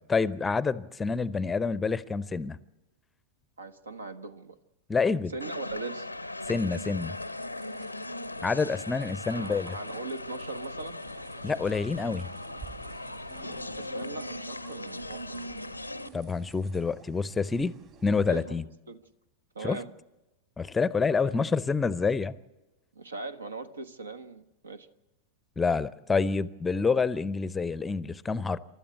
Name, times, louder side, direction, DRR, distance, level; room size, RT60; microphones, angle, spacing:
voice 1, 0.1-2.6 4.9-5.3 6.5-7.2 8.4-9.8 11.4-12.2 16.1-17.8 18.0-18.6 19.6-19.8 20.6-22.3 25.6-28.6, left 4 dB, 15° left, 0.6 m, -27 dB
voice 2, 3.6-4.6 5.3-6.1 9.3-11.0 13.7-15.4 18.3-19.0 19.5-19.9 21.2-21.3 22.9-24.9, right 3 dB, 75° right, 1.2 m, -40 dB
sound 1, 5.4-16.1, left 2 dB, 85° left, 0.6 m, -39 dB
sound 2, 6.5-16.8, right 7 dB, 55° right, 7.0 m, -61 dB
sound 3, 11.0-18.4, right 7 dB, 40° right, 2.8 m, -52 dB
28.5 x 13.0 x 7.8 m
figure-of-eight pair, 90°, 0 cm